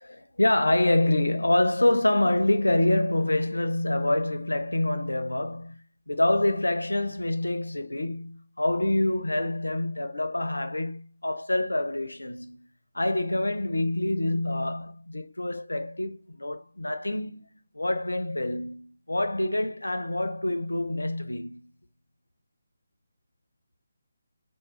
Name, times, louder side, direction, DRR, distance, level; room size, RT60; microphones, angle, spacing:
voice 1, 0.0-12.7 12.9-21.7, left 1 dB, 85° left, 0.5 m, -26 dB
4.6 x 2.2 x 3.0 m
figure-of-eight pair, 150°, 0 cm